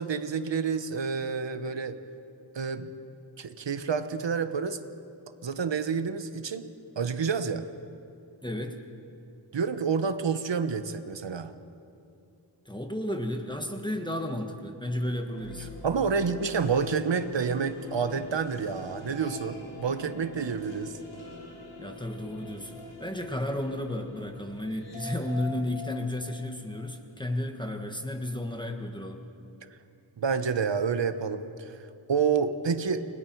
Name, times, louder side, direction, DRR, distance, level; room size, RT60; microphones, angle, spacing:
voice 1, 0.0-2.0 2.5-2.9 3.4-4.8 5.4-6.7 7.0-7.7 9.5-11.5 15.8-21.0 29.7-29.8 30.2-33.1, right 6 dB, 65° right, 10 dB, 1.2 m, -29 dB
voice 2, 8.4-8.8 12.6-15.7 21.8-29.2, left 1 dB, 10° left, 4 dB, 1.6 m, -33 dB
sound 1, 15.3-27.4, left 2 dB, 70° left, 5.6 m, -44 dB
29.5 x 20.5 x 4.7 m, 2.7 s
wide cardioid pair, 75°, 46 cm